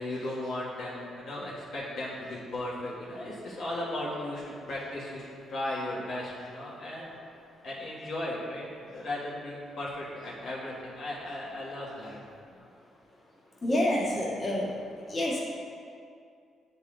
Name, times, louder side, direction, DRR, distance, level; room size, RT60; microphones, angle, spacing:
voice 1, 0.0-7.3 7.6-8.7 8.9-12.2 12.5-12.7, left 1 dB, 65° left, -6 dB, 1.5 m, -36 dB
voice 2, 13.6-14.7 15.1-15.4, left 1 dB, 30° left, -6 dB, 1.7 m, -27 dB
9.5 x 4.1 x 3.8 m, 2.3 s
cardioid pair, 90°, 0 cm